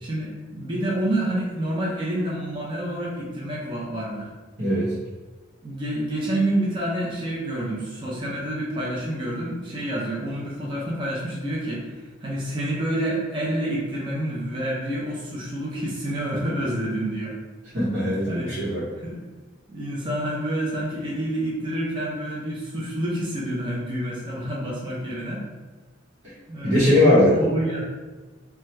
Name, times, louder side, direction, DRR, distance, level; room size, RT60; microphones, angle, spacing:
voice 1, 0.0-4.3 5.6-11.9 12.2-17.3 18.3-18.5 19.0-19.3 19.7-25.4 26.5-27.8, right 1 dB, 25° right, -5 dB, 0.5 m, -28 dB
voice 2, 4.6-5.0 17.7-18.9 26.6-27.4, left 1 dB, 70° right, -12 dB, 1.1 m, -20 dB
2.8 x 2.3 x 3.2 m, 1.2 s
head